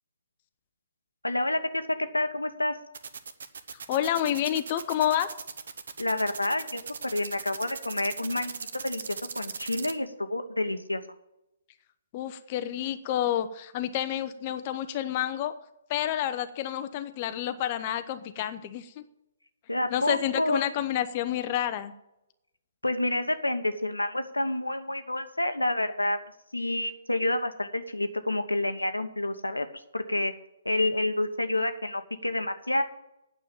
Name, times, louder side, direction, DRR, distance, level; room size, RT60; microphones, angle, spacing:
voice 1, 1.2-2.8 6.0-11.0 19.7-20.6 22.8-26.2 26.5-29.7 29.9-30.3 30.6-32.8, left 1 dB, 90° left, 9 dB, 1.0 m, -29 dB
sound 1, 2.9-9.9, right 6 dB, 60° right, 0.9 m, -38 dB
voice 2, 3.9-5.3 12.1-15.5 15.9-19.0 19.9-21.9, left 11 dB, 35° left, 9 dB, 0.7 m, -29 dB
9.2 x 7.0 x 8.8 m, 0.88 s
figure-of-eight pair, 130°, 0 cm